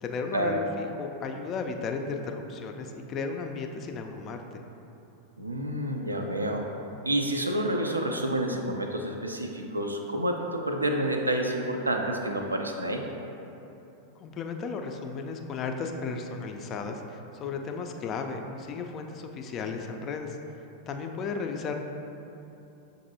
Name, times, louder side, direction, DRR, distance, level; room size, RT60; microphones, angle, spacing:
voice 1, 0.0-4.6 14.2-20.4 20.9-21.7, left 4 dB, 30° left, 4 dB, 0.3 m, -34 dB
voice 2, 5.4-6.7 7.0-13.0, right 1 dB, 80° right, 2 dB, 0.3 m, -29 dB
6.4 x 2.6 x 2.6 m, 2.9 s
figure-of-eight pair, 90°, 0 cm